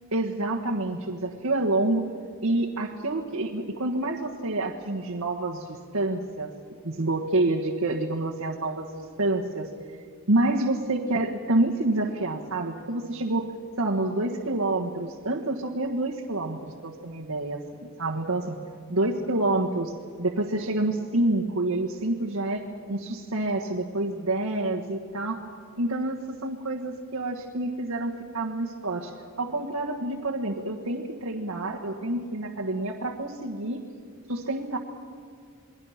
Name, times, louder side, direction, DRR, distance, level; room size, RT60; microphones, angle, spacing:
voice 1, 0.1-2.0 2.4-6.5 6.8-9.7 10.3-13.5 13.8-18.6 18.9-19.9 20.2-25.4 25.8-29.1 29.4-33.8 34.3-34.8, right 2 dB, 85° right, -2 dB, 1.6 m, -28 dB
28.5 x 21.5 x 5.8 m, 2.2 s
head